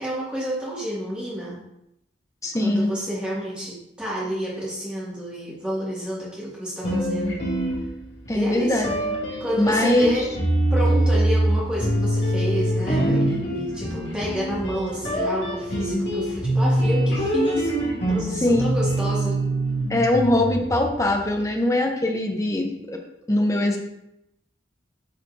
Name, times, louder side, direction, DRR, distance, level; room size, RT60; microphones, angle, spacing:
voice 1, 0.0-1.6 2.6-7.5 8.3-9.0 9.4-10.3 10.7-17.7 18.1-19.4, equal, 5° right, -7 dB, 1.9 m, -29 dB
voice 2, 2.4-2.9 8.3-8.9 9.6-10.1 18.4-18.6 19.9-23.0 23.3-23.8, left 1 dB, 15° left, 2 dB, 0.7 m, -21 dB
sound 1, 6.8-8.3 8.8-21.0, right 1 dB, 70° left, 2.3 m, -24 dB
9.1 x 4.3 x 2.6 m, 0.82 s
head